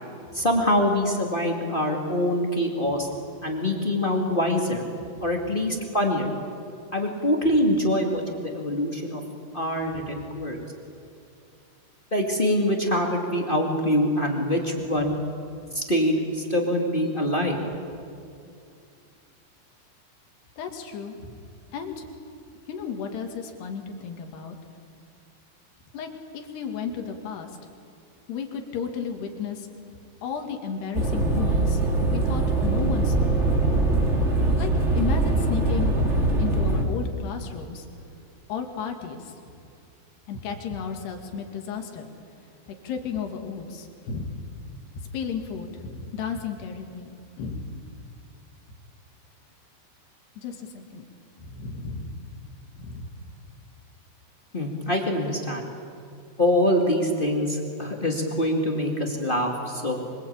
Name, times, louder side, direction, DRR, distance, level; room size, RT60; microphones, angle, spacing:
voice 1, 0.3-3.1 3.4-4.9 5.2-6.3 6.9-9.2 9.5-10.6 12.1-15.2 15.7-17.6 54.5-55.7 56.4-60.0, left 1 dB, 30° left, 1 dB, 0.9 m, -24 dB
voice 2, 20.6-21.3 21.7-22.1 22.7-24.6 25.9-27.5 28.3-31.8 32.1-33.3 34.6-34.7 35.0-36.0 36.4-37.9 38.5-39.4 40.3-42.1 42.8-44.3 45.0-47.7 50.4-51.1 51.4-52.1 52.8-53.1, left 6 dB, 65° left, 4 dB, 4.2 m, -33 dB
sound 1, 30.9-36.8, right 2 dB, 25° right, 1.6 m, -22 dB
25.5 x 23.0 x 8.8 m, 2.4 s
omnidirectional pair, 5.2 m